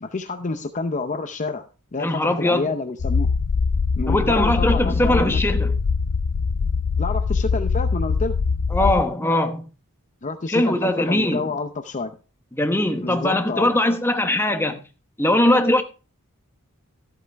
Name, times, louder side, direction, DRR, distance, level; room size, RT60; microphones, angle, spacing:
voice 1, 0.0-1.6 1.9-3.3 4.0-5.4 7.0-8.4 10.2-12.1 13.0-13.7, left 3 dB, 35° left, 0.6 m, -28 dB
voice 2, 2.0-2.7 4.1-5.7 8.7-9.7 10.5-11.5 12.5-14.8 15.2-15.8, left 1 dB, 10° left, 1.0 m, -21 dB
sound 1, 3.0-9.0, left 5 dB, 85° left, 0.5 m, -22 dB
13.5 x 8.0 x 3.4 m
head